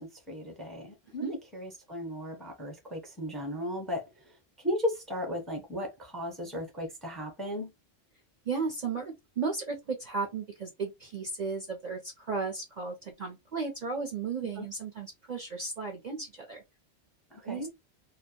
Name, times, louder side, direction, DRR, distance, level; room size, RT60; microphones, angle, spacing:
voice 1, 0.0-1.2 1.5-4.1 4.6-7.7 14.6-14.7 17.3-17.7, left 1 dB, ahead, 0.6 m, -35 dB
voice 2, 8.5-16.6 17.4-17.7, right 4 dB, 50° right, 0.5 m, -35 dB
2.2 x 2.0 x 2.8 m
omnidirectional pair, 1.2 m